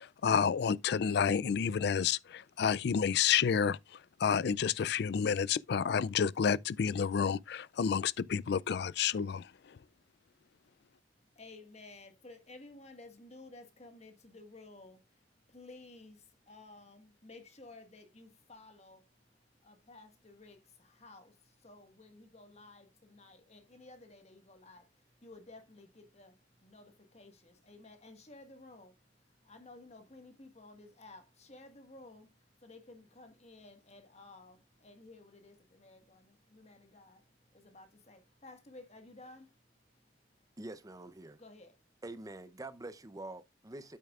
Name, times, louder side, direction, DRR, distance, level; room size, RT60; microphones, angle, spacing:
voice 1, 0.0-9.8, left 7 dB, 60° left, 0.4 m, -30 dB
voice 2, 11.3-40.5 41.4-41.8, left 2 dB, 35° left, 1.6 m, -55 dB
voice 3, 40.6-41.4 42.0-44.0, right 2 dB, 20° right, 0.6 m, -45 dB
9.2 x 8.6 x 2.4 m
head